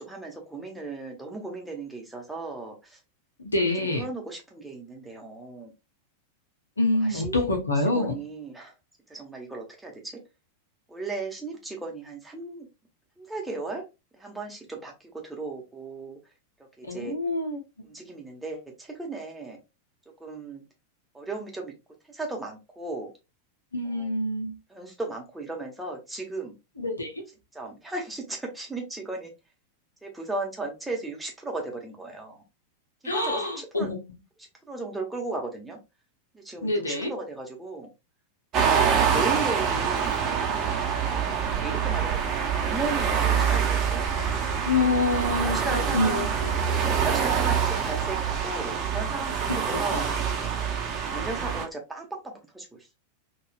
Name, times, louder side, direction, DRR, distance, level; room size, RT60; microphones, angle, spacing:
voice 1, 0.0-3.0 3.9-5.7 7.1-7.4 7.9-8.7 9.1-10.0 10.9-12.7 13.2-13.8 14.2-14.9 15.2-16.2 16.8-17.1 17.8-19.6 20.2-20.6 21.1-21.7 22.1-23.1 23.8-24.1 24.7-26.5 27.5-29.3 30.0-32.4 33.0-33.9 34.7-35.8 36.3-37.9 38.8-40.2 41.6-44.1 45.4-50.1 50.9-52.8, right 3 dB, 5° right, 0 dB, 1.0 m, -36 dB
voice 2, 3.4-4.1 6.8-8.2 16.8-17.6 23.7-24.5 26.8-27.2 33.0-34.0 36.6-37.1 44.6-46.5 49.5-49.6 49.9-50.0, left 2 dB, 80° left, 3 dB, 0.8 m, -26 dB
sound 1, 38.5-51.6, right 7 dB, 35° right, 0.8 m, -26 dB
3.9 x 2.4 x 2.3 m, 0.25 s
figure-of-eight pair, 90°, 0 cm